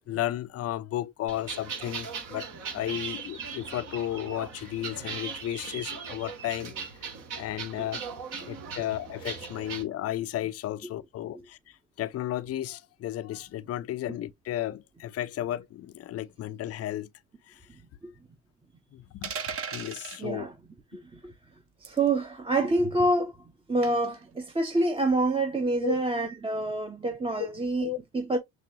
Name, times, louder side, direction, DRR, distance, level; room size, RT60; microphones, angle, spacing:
voice 1, 0.0-6.8 7.3-8.0 8.5-17.1 17.5-17.6 18.9-19.3 19.7-20.5 25.8-26.0 27.4-27.5 27.8-28.0, left 13 dB, 45° left, 0.5 m, -33 dB
sound 1, 1.3-9.8, right 5 dB, 65° right, 2.0 m, -39 dB
sound 2, 19.2-20.2 21.8-22.1 23.8-24.2, right 6 dB, 40° right, 1.0 m, -36 dB
voice 2, 20.2-20.5 20.9-21.3 21.8-23.3 23.7-27.9 28.1-28.4, right 2 dB, 15° right, 0.8 m, -27 dB
6.1 x 2.3 x 2.8 m
supercardioid pair, 70°, 34 cm